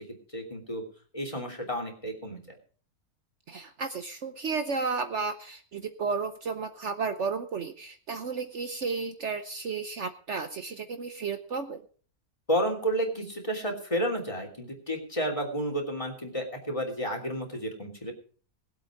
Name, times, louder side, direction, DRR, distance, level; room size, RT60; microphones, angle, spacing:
voice 1, 0.3-0.8 1.1-2.5 12.5-18.1, equal, 20° left, 2 dB, 3.2 m, -31 dB
voice 2, 3.5-11.8, right 4 dB, 55° right, 8 dB, 1.2 m, -33 dB
20.5 x 8.1 x 5.0 m, 0.42 s
omnidirectional pair, 1.5 m